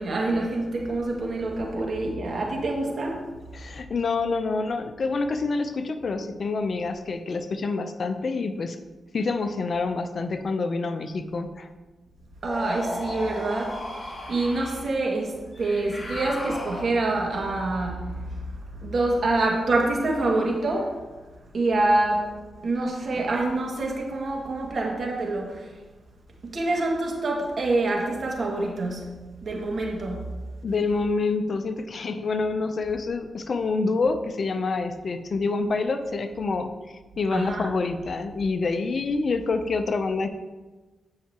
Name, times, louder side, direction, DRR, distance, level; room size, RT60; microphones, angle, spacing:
voice 1, 0.0-3.3 12.4-21.0 21.5-25.7 26.4-29.1 29.4-30.3 37.3-37.7, right 2 dB, 60° right, 0 dB, 2.0 m, -26 dB
voice 2, 3.5-8.8 9.1-11.7 30.6-40.3, left 3 dB, 55° left, 8 dB, 0.6 m, -27 dB
sound 1, 12.4-14.9 15.5-17.2, left 1 dB, 30° left, 2.2 m, -35 dB
14.5 x 5.6 x 3.0 m, 1.2 s
cardioid pair, 65°, 0 cm